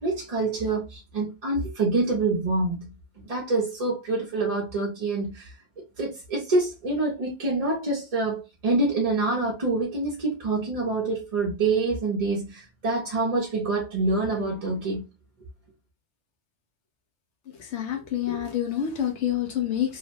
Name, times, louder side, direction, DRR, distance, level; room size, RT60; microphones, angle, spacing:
voice 1, 0.0-2.9 3.2-5.5 6.0-15.0, right 3 dB, 40° right, 0.7 m, -26 dB
voice 2, 17.6-20.0, left 10 dB, 80° left, 0.9 m, -27 dB
2.9 x 2.1 x 2.6 m
omnidirectional pair, 1.2 m